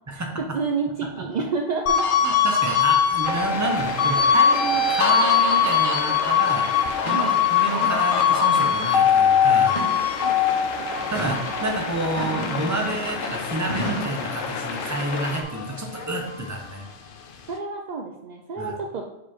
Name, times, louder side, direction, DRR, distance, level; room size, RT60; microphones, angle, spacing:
voice 1, 0.5-2.1 7.1-7.3 10.2-10.6 11.0-11.1 17.5-19.1, right 4 dB, 60° right, 2 dB, 0.4 m, -29 dB
sound 1, 1.9-14.5 14.9-16.6, left 7 dB, 55° left, 0.7 m, -22 dB
voice 2, 2.2-7.2 7.5-10.1 11.1-16.9 18.6-18.7, right 2 dB, 15° right, 2 dB, 0.7 m, -29 dB
sound 2, 3.2-15.4, left 5 dB, 85° left, 1.1 m, -32 dB
sound 3, 6.4-6.5 7.1-7.3 7.7-8.1 8.6-9.0 9.7-10.4 11.1-11.4 12.2-13.0 13.7-14.2, right 1 dB, 25° left, 2.0 m, -32 dB
4.9 x 4.7 x 4.4 m, 0.97 s
omnidirectional pair, 1.3 m